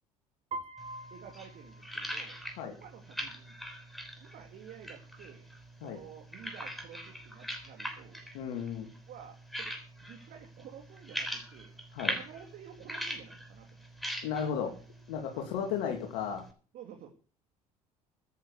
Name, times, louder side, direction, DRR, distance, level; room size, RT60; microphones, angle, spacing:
Piano, 0.5-2.5, right 2 dB, 35° right, 1.3 m, -44 dB
sound 1, 0.8-16.5, equal, ahead, 6.3 m, -42 dB
voice 1, 1.1-2.4 2.7-3.5 4.2-5.5 5.8-8.3 9.1-9.7 10.0-11.8 12.1-13.8 14.7-14.8 15.3-15.5 16.7-17.1, right 8 dB, 50° right, 3 dB, 3.0 m, -51 dB
voice 2, 8.3-8.9 11.9-12.2 14.2-14.7 15.1-16.4, left 7 dB, 60° left, 3 dB, 2.7 m, -34 dB
13.5 x 9.7 x 8.2 m, 0.39 s
figure-of-eight pair, 60°, 19 cm